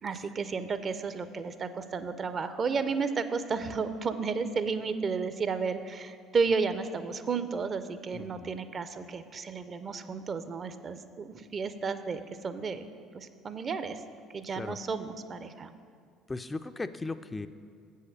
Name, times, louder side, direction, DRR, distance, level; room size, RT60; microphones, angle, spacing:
voice 1, 0.0-12.9 13.1-14.0 14.3-15.7, right 5 dB, 40° right, 11 dB, 0.5 m, -32 dB
voice 2, 8.1-8.5 14.6-14.8 16.3-17.5, left 3 dB, 20° left, 10 dB, 0.3 m, -37 dB
7.8 x 5.6 x 6.4 m, 2.2 s
hypercardioid pair, 60°, 0 cm